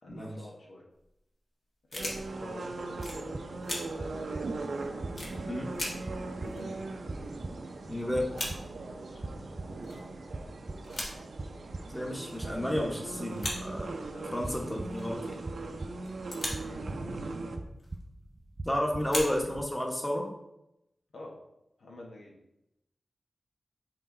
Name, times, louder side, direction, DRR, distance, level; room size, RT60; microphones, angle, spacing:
voice 1, 0.0-0.8 1.9-3.4 4.0-4.5 5.2-5.7 6.4-6.9 8.9-9.4 10.0-10.2 14.1-14.4 15.7-15.9 21.1-21.4 21.8-22.4, left 1 dB, 90° left, -2 dB, 1.3 m, -47 dB
sound 1, 0.9-1.1 1.9-2.5 3.0-3.2 3.6-3.8 4.3-4.4 5.1-5.3 5.7-5.9 6.1-6.2 6.4-7.5 7.8-7.9 8.1-8.5 9.3-9.4 9.8-10.1 10.7-11.1 12.2-12.5 13.3-13.6 13.8-14.4 14.9-15.2 16.0-16.7 17.8-18.0 18.9-19.7, left 1 dB, 55° left, 1.7 m, -37 dB
sound 2, 2.0-17.6, right 3 dB, 80° right, 0.6 m, -40 dB
sound 3, 3.0-19.6, right 2 dB, 35° right, 0.4 m, -44 dB
voice 2, 7.9-8.3 11.9-14.0 14.3-15.4 18.6-20.2, equal, 10° left, 0 dB, 1.1 m, -32 dB
5.7 x 4.4 x 3.8 m, 0.85 s
wide cardioid pair, 80°, 0 cm